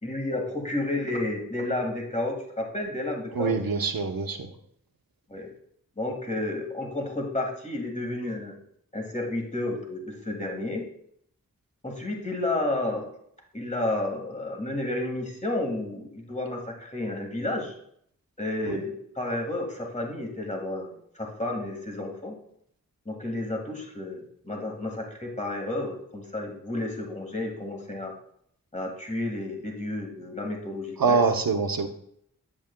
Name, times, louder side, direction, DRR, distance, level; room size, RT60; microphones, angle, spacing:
voice 1, 0.0-3.6 5.3-5.5 6.0-8.5 8.9-10.8 11.8-13.1 13.5-17.8 18.4-22.3 23.1-28.1 28.7-31.2, left 2 dB, 20° left, 1 dB, 1.8 m, -31 dB
voice 2, 3.4-4.5 18.7-18.8 31.0-31.9, right 5 dB, 90° right, 6 dB, 0.8 m, -24 dB
8.9 x 7.2 x 2.2 m, 0.70 s
wide cardioid pair, 50°, 34 cm